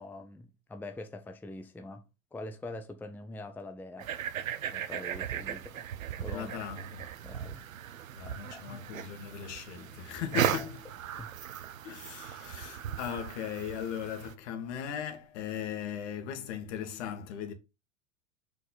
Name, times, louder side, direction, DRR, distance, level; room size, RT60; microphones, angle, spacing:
voice 1, 0.0-2.0 2.3-4.1 4.7-5.9 6.2-6.5 7.2-7.7 8.3-9.0 10.3-10.4 11.1-11.3, left 2 dB, 5° left, 0.7 m, -44 dB
sound 1, 4.0-14.3, right 10 dB, 90° right, 0.8 m, -37 dB
voice 2, 6.3-7.1 8.1-10.9 11.8-17.5, left 8 dB, 60° left, 1.8 m, -38 dB
6.0 x 4.9 x 4.0 m
hypercardioid pair, 100°, 40 cm